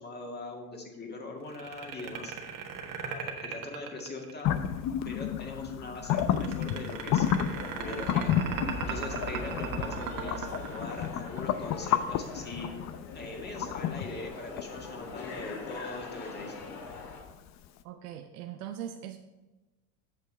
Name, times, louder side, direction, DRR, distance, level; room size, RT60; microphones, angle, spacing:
voice 1, 0.0-2.3 3.1-4.6 5.0-8.3 8.9-12.7 13.1-16.6, left 2 dB, 20° left, 1 dB, 2.0 m, -41 dB
sound 1, 1.5-4.7 6.1-11.6, right 6 dB, 45° right, 1.5 m, -37 dB
sound 2, 4.4-17.3, left 9 dB, 40° left, 0.6 m, -32 dB
sound 3, 7.4-17.2, left 3 dB, 60° left, 2.5 m, -43 dB
voice 2, 17.8-19.2, right 10 dB, 80° right, 5 dB, 0.7 m, -40 dB
8.6 x 6.5 x 4.3 m, 1.1 s
hypercardioid pair, 85°, 45 cm